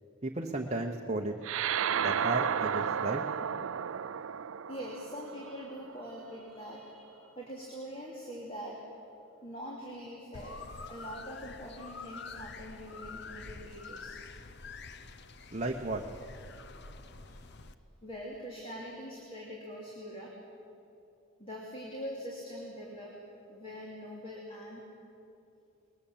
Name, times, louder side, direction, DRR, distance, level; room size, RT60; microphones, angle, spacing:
voice 1, 0.2-1.3 2.0-3.2 15.5-16.0, right 2 dB, 30° right, 1 dB, 0.9 m, -34 dB
sound 1, 1.4-6.2, right 8 dB, 65° right, 0.4 m, -33 dB
voice 2, 4.7-8.8 9.4-10.6 10.9-14.2 17.2-17.4 18.0-20.3 21.4-23.2 23.5-24.8, equal, 25° left, -3 dB, 2.7 m, -43 dB
sound 2, 10.3-17.7, left 4 dB, 50° left, 0.8 m, -47 dB
21.0 x 20.5 x 7.4 m, 2.7 s
head